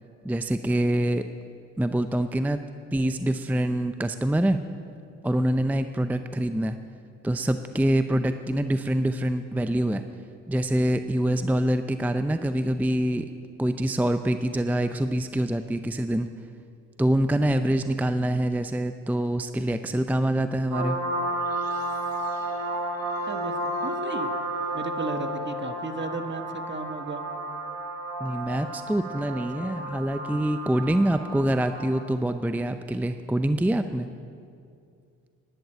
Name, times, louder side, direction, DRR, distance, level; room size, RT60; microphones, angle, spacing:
voice 1, 0.2-1.2 1.8-2.6 2.9-4.6 5.2-6.8 7.2-10.0 10.5-13.3 13.6-16.3 17.0-21.0 28.2-34.1, right 1 dB, 5° right, 9 dB, 0.6 m, -25 dB
sound 1, 20.7-32.1, right 1 dB, 55° right, 3.1 m, -32 dB
voice 2, 23.8-24.3 24.7-27.2, right 3 dB, 30° right, 7 dB, 1.4 m, -34 dB
11.0 x 10.5 x 8.6 m, 2.4 s
hypercardioid pair, 50°, 38 cm